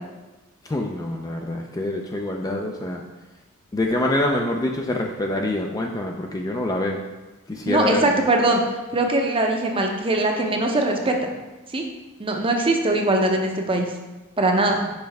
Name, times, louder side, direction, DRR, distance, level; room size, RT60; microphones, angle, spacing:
voice 1, 0.6-3.0 3.7-7.0 7.5-8.1 14.7-14.8, left 1 dB, 15° left, 1 dB, 0.4 m, -25 dB
voice 2, 7.7-8.6 8.9-11.2 11.7-11.8 12.2-13.9 14.4-14.8, right 2 dB, 25° right, 2 dB, 0.6 m, -21 dB
5.6 x 5.1 x 3.4 m, 1.1 s
head